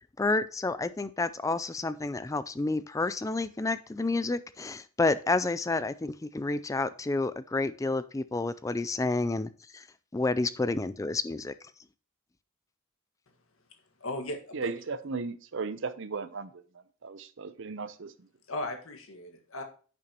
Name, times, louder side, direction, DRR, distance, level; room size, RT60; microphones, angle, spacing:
voice 1, 0.2-9.9 10.1-11.5, left 3 dB, 15° left, 15 dB, 0.3 m, -30 dB
voice 2, 14.0-14.7 18.5-19.6, left 1 dB, 70° left, 5 dB, 1.6 m, -37 dB
voice 3, 14.5-16.6 17.0-18.1, right 4 dB, 60° right, 12 dB, 0.6 m, -36 dB
10.0 x 6.9 x 2.9 m, 0.39 s
head